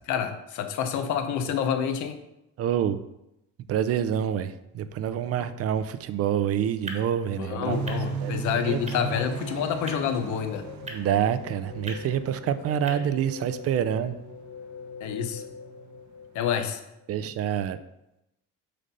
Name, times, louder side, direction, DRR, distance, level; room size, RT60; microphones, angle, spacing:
voice 1, 0.1-2.2 5.4-5.5 7.4-10.7 15.0-15.4 16.3-16.8, left 8 dB, 80° left, 8 dB, 0.9 m, -28 dB
voice 2, 2.6-3.0 3.7-7.8 8.2-8.4 8.6-8.8 10.9-14.1 17.1-17.8, right 9 dB, 55° right, 12 dB, 0.5 m, -27 dB
sound 1, 6.3-13.0, right 2 dB, 20° right, 1.2 m, -45 dB
sound 2, 7.7-16.5, right 7 dB, 75° right, 0.8 m, -38 dB
sound 3, 9.1-17.1, left 6 dB, 45° left, 0.5 m, -43 dB
6.6 x 3.9 x 5.4 m, 0.88 s
cardioid pair, 120°, 29 cm